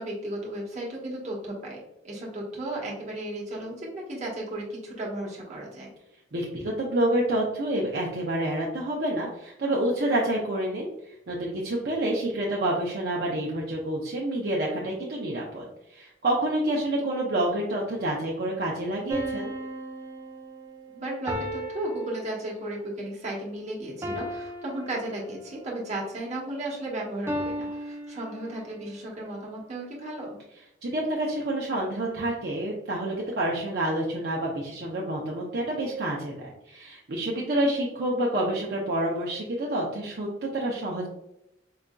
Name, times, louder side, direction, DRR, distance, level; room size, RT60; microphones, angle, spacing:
voice 1, 0.0-1.8 2.0-5.9 20.9-30.4, right 1 dB, 40° right, -4 dB, 1.1 m, -34 dB
voice 2, 6.3-19.5 30.8-41.1, right 1 dB, 60° right, -3 dB, 0.6 m, -28 dB
sound 1, 19.1-22.8 24.0-25.6 27.3-28.8, equal, 15° right, 0.5 m, -36 dB
4.7 x 2.6 x 2.2 m, 0.84 s
head